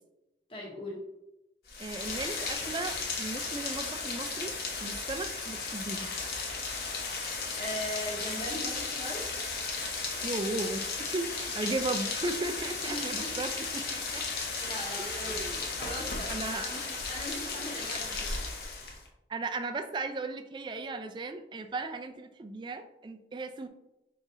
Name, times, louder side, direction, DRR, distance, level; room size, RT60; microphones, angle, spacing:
voice 1, 0.5-1.0 7.6-9.2 12.8-13.3 14.6-15.4 15.7-18.4, equal, 30° left, -3 dB, 1.0 m, -39 dB
Rain, 1.7-19.1, left 4 dB, 60° left, 0.8 m, -35 dB
voice 2, 1.8-4.5 4.8-6.1 10.2-14.2 15.0-15.6 16.3-16.7 19.3-23.7, right 3 dB, 25° right, 8 dB, 0.3 m, -36 dB
4.7 x 3.8 x 2.7 m, 0.93 s
head